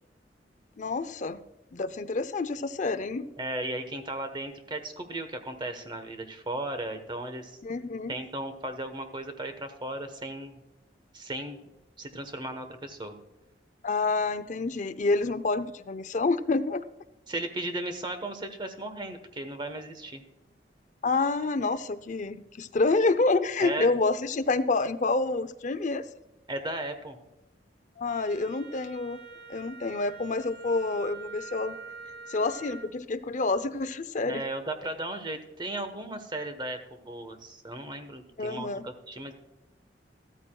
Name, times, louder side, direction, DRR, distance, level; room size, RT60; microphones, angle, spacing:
voice 1, 0.8-1.4 1.7-3.3 7.6-8.1 13.8-16.8 21.0-26.0 28.0-29.2 29.5-31.8 32.3-34.4 38.4-38.9, left 3 dB, 45° left, 12 dB, 0.6 m, -28 dB
voice 2, 3.4-7.6 8.1-10.6 11.1-11.7 12.0-13.2 17.3-20.3 23.6-23.9 26.5-27.2 34.2-39.3, right 1 dB, 25° right, 7 dB, 1.1 m, -36 dB
Wind instrument woodwind instrument, 28.1-32.9, right 5 dB, 75° right, 1.3 m, -45 dB
13.5 x 13.5 x 2.3 m, 0.96 s
head